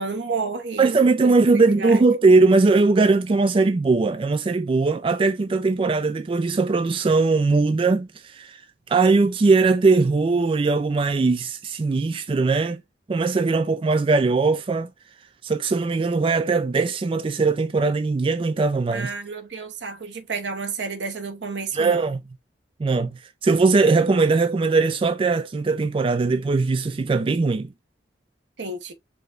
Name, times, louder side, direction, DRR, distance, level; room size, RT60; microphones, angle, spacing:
voice 1, 0.0-1.4 1.8-2.0 18.9-22.1 28.6-28.9, right 4 dB, 80° right, 1.0 m, -31 dB
voice 2, 0.8-8.6 8.9-12.8 13.1-14.9 15.4-19.1 21.7-22.2 22.8-23.1 23.4-27.7, right 3 dB, 30° right, 0.3 m, -20 dB
4.9 x 2.2 x 3.8 m
head